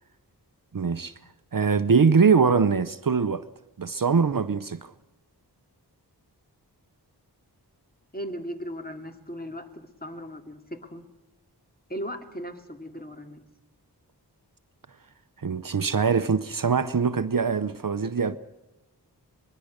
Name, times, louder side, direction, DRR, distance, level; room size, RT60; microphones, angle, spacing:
voice 1, 0.7-1.1 1.5-3.4 3.8-4.9 15.4-18.4, right 5 dB, 55° right, 0.8 m, -22 dB
voice 2, 8.1-11.0 11.9-13.4, equal, 20° left, 2.6 m, -37 dB
23.5 x 21.5 x 6.6 m
wide cardioid pair, 50°, 41 cm